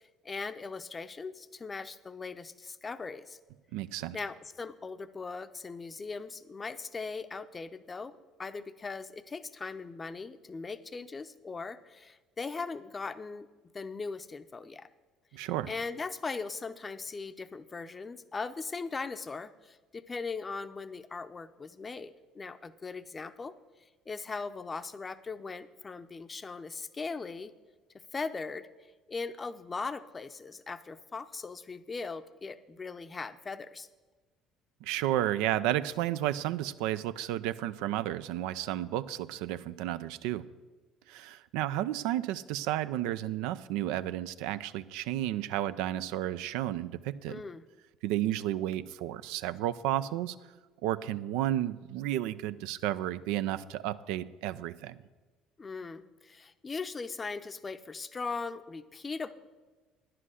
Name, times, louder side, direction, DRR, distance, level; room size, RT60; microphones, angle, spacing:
voice 1, 0.2-3.4 4.1-13.5 13.7-14.9 15.3-23.5 24.1-27.5 28.1-28.7 29.1-33.9 47.3-47.6 55.6-59.3, left 4 dB, 30° left, 12 dB, 0.6 m, -39 dB
voice 2, 3.7-4.2 15.3-15.7 34.8-40.5 41.1-47.4 48.0-50.4 50.8-55.0, right 13 dB, 75° right, 13 dB, 0.3 m, -32 dB
10.0 x 7.7 x 6.3 m, 1.3 s
hypercardioid pair, 70°, 0 cm